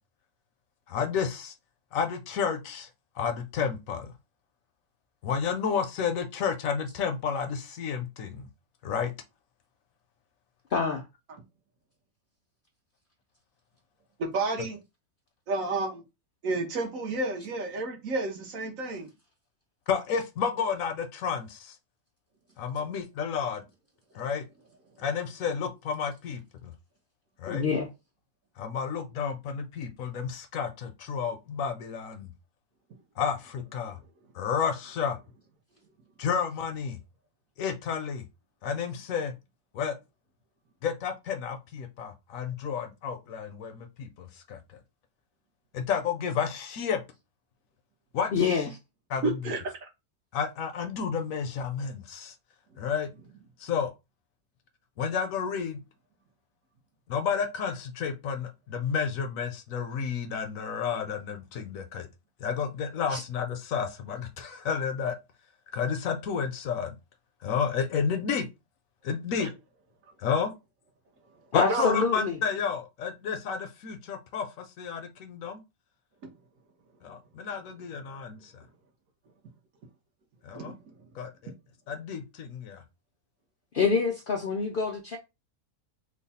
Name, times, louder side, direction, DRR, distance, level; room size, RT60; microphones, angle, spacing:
voice 1, 0.9-1.5 1.9-2.9 3.2-4.1 5.2-8.5 8.8-9.1 19.9-21.8 22.6-23.6 24.1-24.5 25.0-26.7 27.4-27.6 28.6-32.3 33.2-34.0 34.3-35.2 36.2-37.0 37.6-38.2 38.6-39.3 39.7-40.0 40.8-44.6 45.7-47.0 48.1-48.6 49.1-49.4 50.3-52.3 52.8-53.1 53.6-53.9 55.0-55.8 57.1-62.1 62.4-65.2 65.7-67.0 67.4-68.5 69.0-69.5 70.2-70.5 71.5-75.6 77.0-78.6 80.4-80.8 81.1-81.5 81.9-82.8, left 6 dB, 70° left, 0.9 m, -31 dB
voice 2, 10.7-11.0 27.5-27.9 48.3-48.7 63.1-63.2 71.5-72.4 83.7-85.2, left 5 dB, 90° left, 0.4 m, -26 dB
voice 3, 14.2-14.8 15.5-16.0 16.4-19.1 49.2-49.9 69.4-69.5 71.7-72.0 80.5-80.7, right 3 dB, 65° right, 1.2 m, -30 dB
3.1 x 2.3 x 4.0 m
omnidirectional pair, 1.6 m